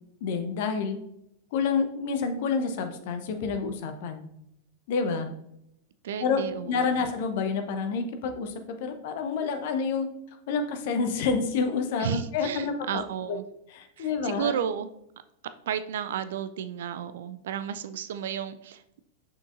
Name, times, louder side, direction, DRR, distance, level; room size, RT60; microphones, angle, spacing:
voice 1, 0.2-1.0 1.5-4.2 4.9-5.3 6.2-6.4 6.7-10.1 10.5-13.0 13.3-13.4 13.7-14.5, left 5 dB, 50° left, 7 dB, 0.8 m, -28 dB
voice 2, 6.0-7.1 12.0-13.4 14.0-14.9 15.7-19.0, right 8 dB, 60° right, 12 dB, 0.4 m, -33 dB
6.5 x 6.0 x 2.6 m, 0.78 s
figure-of-eight pair, 90°, 0 cm